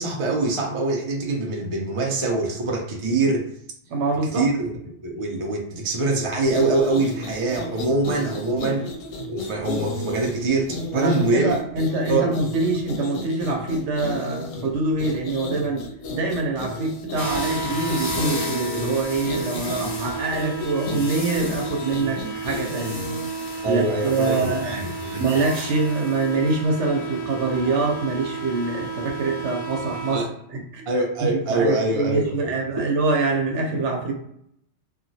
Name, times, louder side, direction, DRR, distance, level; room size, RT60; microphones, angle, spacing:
voice 1, 0.0-3.5 4.3-8.9 9.3-11.6 12.1-12.3 23.6-25.2 30.1-30.3 30.9-32.5, right 2 dB, 40° right, 0 dB, 0.4 m, -24 dB
voice 2, 3.9-4.4 10.9-15.8 16.1-23.1 23.6-24.7 25.2-30.2 30.5-30.8 31.2-34.1, right 3 dB, 70° right, 2 dB, 1.0 m, -25 dB
sound 1, 6.4-23.5, left 2 dB, 85° left, 1.0 m, -33 dB
sound 2, 17.2-30.2, right 2 dB, 40° left, 0.7 m, -31 dB
3.0 x 2.3 x 2.7 m, 0.70 s
omnidirectional pair, 1.3 m